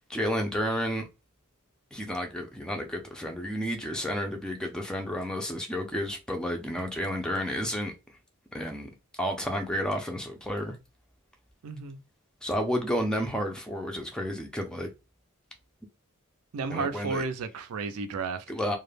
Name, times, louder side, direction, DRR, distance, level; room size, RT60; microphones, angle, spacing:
voice 1, 0.1-1.0 1.9-7.9 8.5-8.9 9.2-10.8 12.4-14.9 16.7-17.2 18.5-18.8, equal, 5° left, 0.3 m, -31 dB
voice 2, 11.6-12.0 16.5-18.4, right 4 dB, 75° right, 0.4 m, -32 dB
2.2 x 2.0 x 3.2 m
head